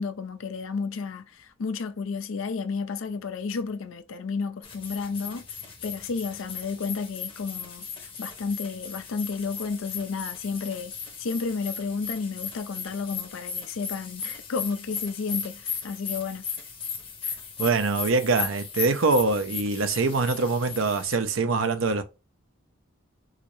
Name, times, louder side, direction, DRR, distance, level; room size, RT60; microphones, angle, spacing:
voice 1, 0.0-5.4 5.8-7.9 8.2-10.9 11.2-16.4, left 4 dB, 70° left, 0.4 m, -32 dB
sound 1, 4.6-21.1, left 6 dB, 25° left, 0.9 m, -37 dB
voice 2, 17.6-22.0, right 3 dB, 75° right, 0.6 m, -24 dB
4.8 x 2.0 x 3.1 m
head